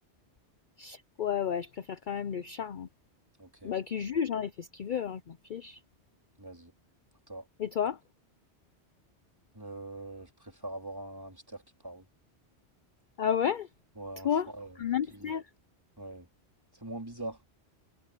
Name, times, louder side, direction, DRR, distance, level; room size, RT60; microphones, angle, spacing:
voice 1, 0.8-2.9 3.6-5.8 7.6-8.0 13.2-13.7 14.2-14.5 14.8-15.5, left 8 dB, 50° left, 0.7 m, -32 dB
voice 2, 3.4-3.7 6.4-6.7 7.3-7.5 9.5-12.1 14.0-14.8 15.1-15.3 16.0-16.3 16.7-17.4, right 2 dB, 20° right, 4.0 m, -43 dB
omnidirectional pair, 1.2 m